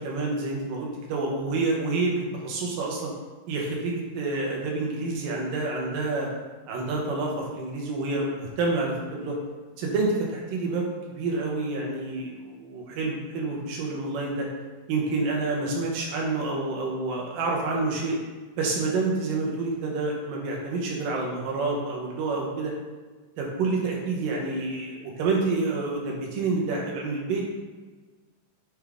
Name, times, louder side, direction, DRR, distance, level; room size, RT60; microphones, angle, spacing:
voice 1, 0.0-3.1 3.5-6.3 6.7-9.4 9.8-14.5 14.9-18.2 18.6-22.7 23.4-27.5, right 3 dB, 80° right, -1 dB, 2.7 m, -28 dB
9.6 x 3.6 x 3.5 m, 1.3 s
omnidirectional pair, 3.9 m